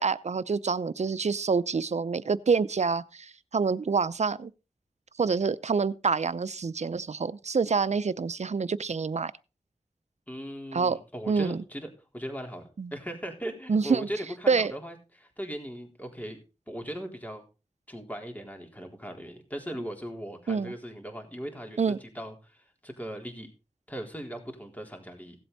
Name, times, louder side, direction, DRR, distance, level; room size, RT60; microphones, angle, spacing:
voice 1, 0.0-4.5 5.2-9.3 10.7-11.0 11.3-11.6 12.8-12.9 13.7-14.1 14.5-14.7 20.5-20.7 21.8-22.0, right 5 dB, 75° right, 0.6 m, -27 dB
voice 2, 10.3-16.4 16.7-17.4 17.9-23.5 23.9-25.4, equal, 15° left, 3.8 m, -39 dB
16.5 x 7.9 x 4.0 m
wide cardioid pair, 45°, 12 cm